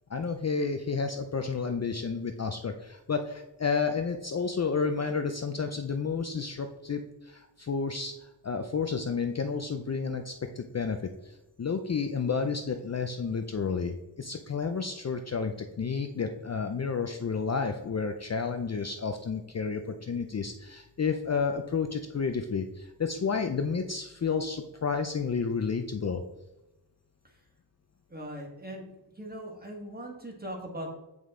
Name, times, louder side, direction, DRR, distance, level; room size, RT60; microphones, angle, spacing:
voice 1, 0.1-26.2, left 5 dB, 35° left, 6 dB, 0.5 m, -31 dB
voice 2, 28.1-28.8 29.2-30.9, right 1 dB, 20° right, 0 dB, 1.6 m, -39 dB
7.9 x 5.4 x 3.7 m, 0.98 s
wide cardioid pair, 115°, 44 cm